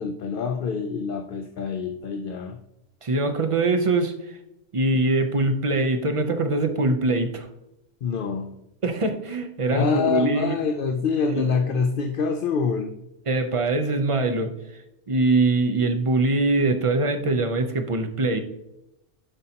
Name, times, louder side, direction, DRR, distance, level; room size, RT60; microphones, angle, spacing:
voice 1, 0.0-2.6 8.0-8.6 9.7-12.9, left 5 dB, 60° left, 6 dB, 0.6 m, -26 dB
voice 2, 3.0-4.4 4.7-7.5 8.8-10.6 11.3-11.5 13.3-14.8 15.1-18.4, right 2 dB, 40° right, 6 dB, 0.5 m, -23 dB
11.5 x 5.4 x 2.8 m, 0.88 s
omnidirectional pair, 1.3 m